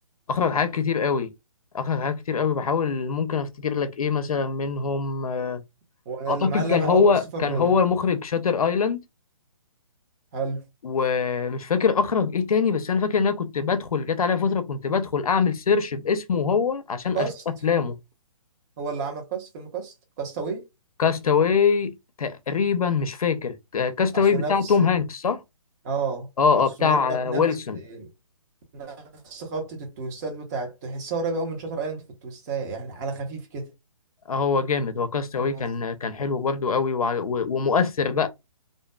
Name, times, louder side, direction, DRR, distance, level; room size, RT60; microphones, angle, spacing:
voice 1, 0.3-1.3 1.7-5.6 6.3-9.0 10.8-18.0 21.0-25.4 26.4-27.8 34.3-38.3, left 5 dB, 85° left, 0.5 m, -23 dB
voice 2, 6.1-7.7 10.3-10.6 17.1-17.4 18.8-20.6 24.1-24.9 25.8-26.3 26.6-27.5 27.7-28.1 28.7-33.7 35.3-35.7, right 4 dB, 30° right, 0.9 m, -31 dB
2.6 x 2.3 x 2.2 m
hypercardioid pair, 150°, 18 cm